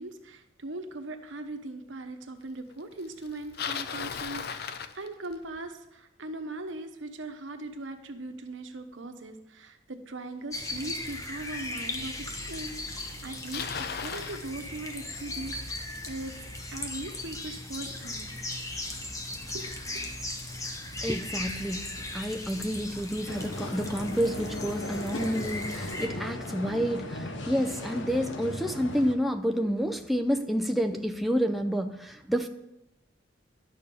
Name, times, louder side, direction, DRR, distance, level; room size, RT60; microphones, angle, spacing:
voice 1, 0.0-13.7 13.9-16.3 16.7-19.0 19.5-20.1, right 2 dB, 80° right, 6 dB, 1.1 m, -40 dB
Bicycle, 3.2-5.6 10.6-10.7 11.6-11.7 12.7-12.8 13.0-14.4, left 7 dB, 55° left, 0.5 m, -36 dB
sound 1, 10.5-26.1, left 2 dB, 15° left, 1.0 m, -38 dB
voice 2, 21.0-21.8 22.1-32.5, equal, ahead, 4 dB, 0.4 m, -29 dB
sound 2, 23.3-29.2, left 1 dB, 75° left, 1.0 m, -37 dB
11.0 x 6.6 x 5.3 m, 0.90 s
head